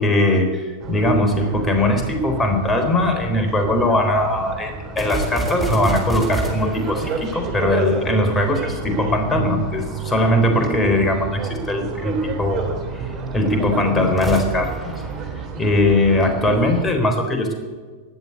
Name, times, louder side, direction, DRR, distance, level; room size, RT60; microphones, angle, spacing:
voice 1, 0.0-14.9 15.6-17.5, left 1 dB, 15° left, 4 dB, 3.9 m, -20 dB
sound 1, 0.8-16.9, right 5 dB, 40° right, 3.5 m, -30 dB
sound 2, 5.0-8.4 14.1-16.2, right 1 dB, 5° right, 3.7 m, -29 dB
20.5 x 7.6 x 8.5 m, 1.5 s
hypercardioid pair, 105°, 0 cm